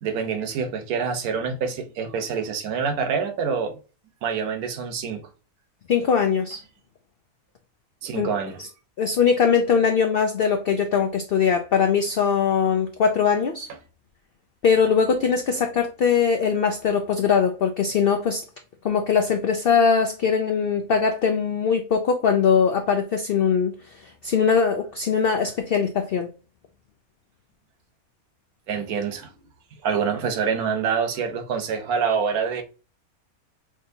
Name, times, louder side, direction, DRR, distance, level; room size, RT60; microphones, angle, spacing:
voice 1, 0.0-3.8 4.2-5.2 8.0-8.6 28.7-29.3 29.8-32.6, right 6 dB, 75° right, 1.2 m, -26 dB
voice 2, 5.9-6.6 8.1-8.3 8.6-8.7 9.0-13.7 14.6-18.4 18.8-26.3, left 6 dB, 80° left, 0.5 m, -21 dB
6.0 x 2.7 x 2.7 m
omnidirectional pair, 1.6 m